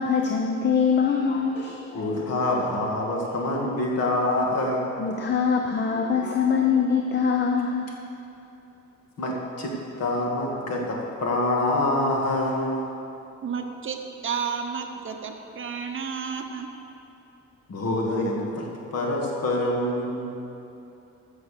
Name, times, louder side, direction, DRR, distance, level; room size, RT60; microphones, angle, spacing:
voice 1, 0.0-2.1 2.5-2.7 3.3-3.5 5.0-8.0, left 6 dB, 35° left, 2 dB, 0.8 m, -24 dB
voice 2, 1.9-5.0 9.2-9.7 10.0-12.8 17.7-20.3, left 1 dB, 55° left, -1 dB, 2.1 m, -26 dB
voice 3, 13.4-16.7, right 6 dB, 45° right, 4 dB, 0.9 m, -32 dB
14.5 x 6.4 x 6.7 m, 2.8 s
wide cardioid pair, 150°, 30 cm